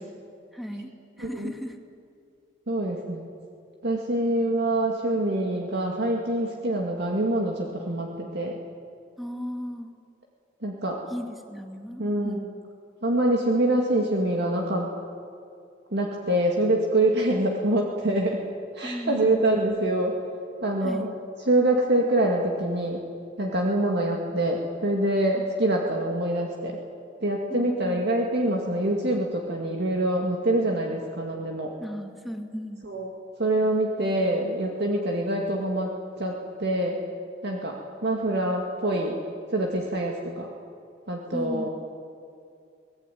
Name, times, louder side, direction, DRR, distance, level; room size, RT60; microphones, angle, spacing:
voice 1, 0.5-1.8 9.2-9.9 11.1-12.5 18.8-19.4 20.8-21.1 27.5-28.1 31.8-32.8 41.3-41.7, equal, ahead, 3 dB, 2.2 m, -35 dB
voice 2, 2.7-3.3 3.8-8.6 10.6-11.0 12.0-12.4 13.0-14.9 15.9-18.4 18.7-20.1 20.6-21.1 21.5-23.0 23.4-26.8 27.2-31.7 32.9-33.1 33.4-37.0 37.4-39.2 39.5-40.5 41.1-41.7, right 1 dB, 65° right, 0 dB, 2.3 m, -25 dB
24.5 x 19.0 x 9.2 m, 2.4 s
head